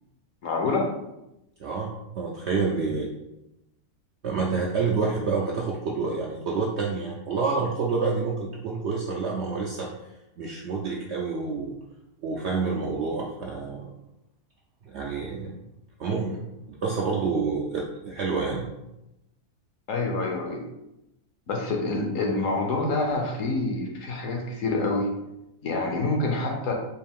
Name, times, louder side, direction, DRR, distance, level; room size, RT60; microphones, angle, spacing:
voice 1, 0.4-0.9 2.8-3.0 19.9-20.6 21.5-25.1 25.6-26.7, left 2 dB, 65° left, 0 dB, 1.0 m, -27 dB
voice 2, 1.6-3.1 4.2-9.9 10.4-11.7 12.2-13.9 14.9-15.6 16.0-16.4 16.7-18.7, right 4 dB, 70° right, -2 dB, 0.6 m, -28 dB
4.4 x 2.4 x 3.6 m, 0.89 s
omnidirectional pair, 1.6 m